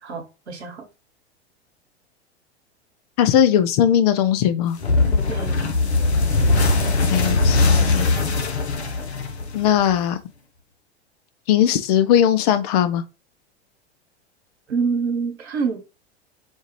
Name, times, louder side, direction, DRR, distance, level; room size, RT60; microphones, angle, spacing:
voice 1, 0.0-0.9 5.3-5.5 14.7-15.8, right 5 dB, 75° right, 1.1 m, -26 dB
voice 2, 3.2-4.8 7.1-8.1 9.5-10.2 11.5-13.0, left 10 dB, 40° left, 0.4 m, -19 dB
sound 1, 4.8-9.9, left 3 dB, 75° left, 0.9 m, -20 dB
4.4 x 2.4 x 3.0 m
figure-of-eight pair, 90°, 33 cm